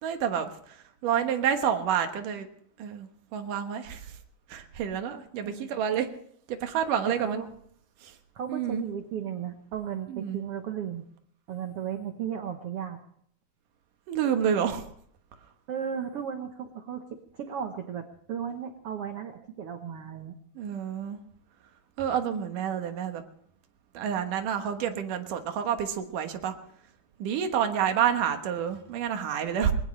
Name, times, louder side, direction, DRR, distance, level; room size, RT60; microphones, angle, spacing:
voice 1, 0.0-2.5 2.8-4.2 4.5-6.1 6.5-7.4 8.0-8.2 8.5-8.8 10.1-10.4 14.1-14.8 20.6-21.2 22.0-23.2 23.9-26.6 27.2-29.7, right 8 dB, 65° right, 7 dB, 2.7 m, -29 dB
voice 2, 5.4-5.7 7.2-7.5 8.3-11.0 11.5-13.0 15.7-20.4, right 8 dB, 85° right, 6 dB, 1.3 m, -35 dB
21.0 x 20.0 x 3.2 m, 0.65 s
omnidirectional pair, 4.3 m